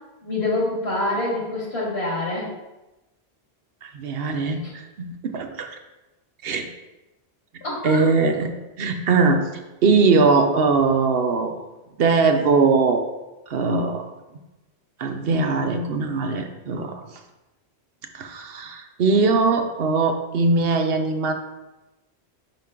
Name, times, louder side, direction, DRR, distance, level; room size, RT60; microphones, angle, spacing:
voice 1, 0.2-2.5 4.6-4.7 7.6-8.0, left 2 dB, 70° left, -4 dB, 2.4 m, -26 dB
voice 2, 3.8-5.8 6.4-6.7 7.8-8.5 8.8-9.5 9.8-11.6 12.0-13.0 13.5-14.1 15.0-17.0 18.1-21.3, right 4 dB, 65° right, 6 dB, 0.9 m, -21 dB
5.8 x 5.7 x 3.7 m, 1.0 s
omnidirectional pair, 1.1 m